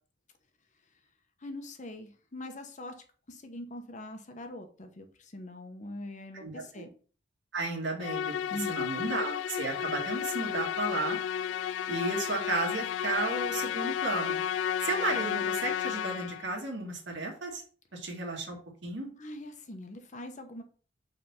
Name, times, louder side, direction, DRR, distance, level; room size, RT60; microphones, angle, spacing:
voice 1, 1.4-6.9 8.5-8.8 19.2-20.6, left 1 dB, 40° left, 6 dB, 1.0 m, -42 dB
voice 2, 7.5-8.3 8.7-11.2 11.9-14.4 14.8-17.6 17.9-19.1, right 2 dB, 65° right, 1 dB, 2.1 m, -33 dB
Musical instrument, 8.0-16.5, left 9 dB, 75° left, 0.3 m, -32 dB
5.6 x 4.2 x 5.6 m, 0.41 s
head